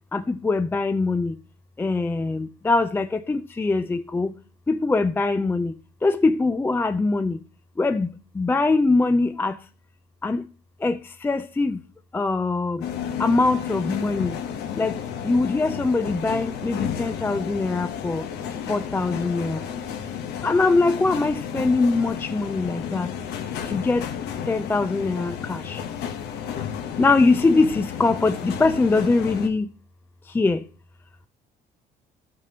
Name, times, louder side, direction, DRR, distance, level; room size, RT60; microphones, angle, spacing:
voice 1, 0.1-1.3 1.8-4.3 4.7-5.7 6.0-7.4 7.8-9.6 10.2-10.4 10.8-11.8 12.1-12.8 13.2-14.3 14.8-15.0 15.2-18.2 18.7-19.6 20.4-23.1 23.7-24.0 24.5-25.8 27.0-29.7 30.3-30.6, left 3 dB, 10° left, 0.4 m, -22 dB
sound 1, 12.8-29.5, left 8 dB, 80° left, 1.0 m, -32 dB
12.5 x 6.0 x 2.9 m
cardioid pair, 110°, 17 cm